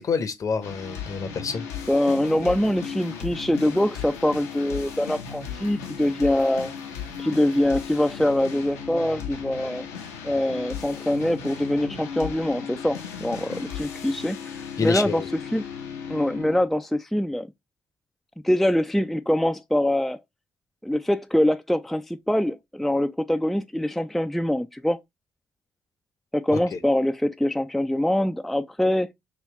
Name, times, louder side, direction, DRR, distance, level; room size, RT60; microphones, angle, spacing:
voice 1, 0.0-1.7 14.8-15.3 26.5-26.8, left 5 dB, 45° left, 0.7 m, -27 dB
sound 1, 0.6-16.6, left 7 dB, 85° left, 0.7 m, -36 dB
voice 2, 1.9-6.7 7.2-9.9 10.2-15.2 15.5-15.6 16.1-17.5 18.4-20.2 20.8-25.0 26.3-29.1, left 1 dB, ahead, 0.3 m, -24 dB
3.0 x 3.0 x 3.0 m
hypercardioid pair, 45°, 8 cm